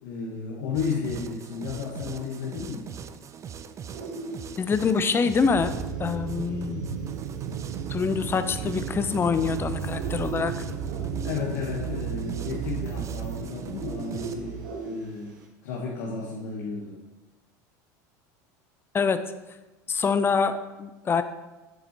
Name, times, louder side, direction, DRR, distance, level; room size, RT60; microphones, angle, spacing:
voice 1, 0.0-2.9 11.2-15.4 15.6-17.0, left 5 dB, 75° left, -2 dB, 1.1 m, -33 dB
sound 1, 0.7-14.3, right 7 dB, 30° right, 0.4 m, -42 dB
sound 2, 3.9-15.5, right 3 dB, 90° right, 1.0 m, -42 dB
voice 2, 4.6-6.8 7.9-10.5 18.9-19.2 19.9-21.2, left 5 dB, 25° left, 10 dB, 0.5 m, -25 dB
sound 3, 5.4-14.7, right 7 dB, 65° right, 0.7 m, -34 dB
7.7 x 5.6 x 2.9 m, 1.1 s
supercardioid pair, 100°, 10 cm